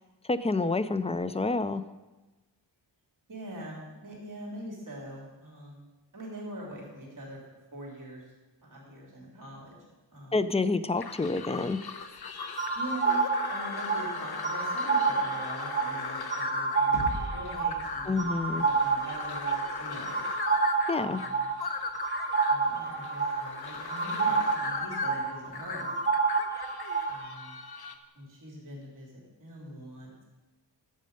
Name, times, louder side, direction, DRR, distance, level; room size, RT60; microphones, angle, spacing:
voice 1, 0.3-1.8 10.3-11.8 18.1-18.6 20.9-21.2, left 3 dB, 15° left, 13 dB, 0.3 m, -28 dB
voice 2, 3.3-5.8 6.1-7.4 7.7-8.2 8.6-9.8 10.1-10.4 12.7-18.3 18.5-20.2 21.0-21.5 22.5-25.9 27.1-27.6 28.1-30.2, right 1 dB, 45° right, -3 dB, 3.0 m, -43 dB
sound 1, 11.0-28.0, left 5 dB, 60° left, 0.8 m, -38 dB
sound 2, 12.6-27.3, right 4 dB, 25° right, 1.2 m, -29 dB
sound 3, 16.9-20.8, equal, 85° left, 2.2 m, -42 dB
11.0 x 7.6 x 5.3 m, 1.1 s
wide cardioid pair, 125°, 44 cm